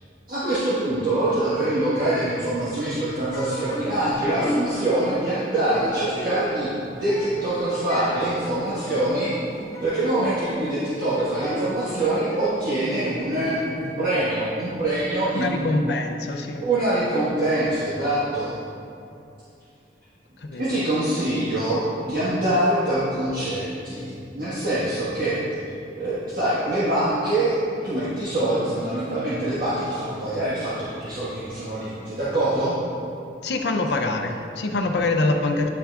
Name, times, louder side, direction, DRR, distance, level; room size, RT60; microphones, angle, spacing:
voice 1, 0.3-9.4 9.8-15.6 16.6-18.5 20.5-24.1 24.3-25.4 26.0-32.7, right 1 dB, 55° right, -12 dB, 1.6 m, -24 dB
sound 1, 3.2-13.9, left 1 dB, 20° left, 1.2 m, -35 dB
voice 2, 15.3-16.6 20.4-20.8 33.4-35.7, left 2 dB, 70° left, 4 dB, 0.6 m, -24 dB
9.9 x 5.9 x 2.4 m, 2.6 s
head